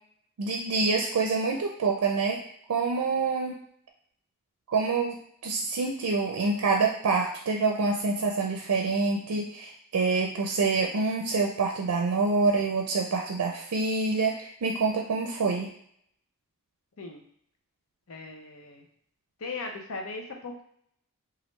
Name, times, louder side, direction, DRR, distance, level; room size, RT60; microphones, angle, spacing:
voice 1, 0.4-2.4 2.7-3.6 4.7-15.7, right 4 dB, 90° right, 1 dB, 0.4 m, -26 dB
voice 2, 18.1-18.8 19.4-20.6, left 3 dB, 65° left, 2 dB, 0.6 m, -38 dB
3.1 x 2.4 x 3.0 m, 0.67 s
head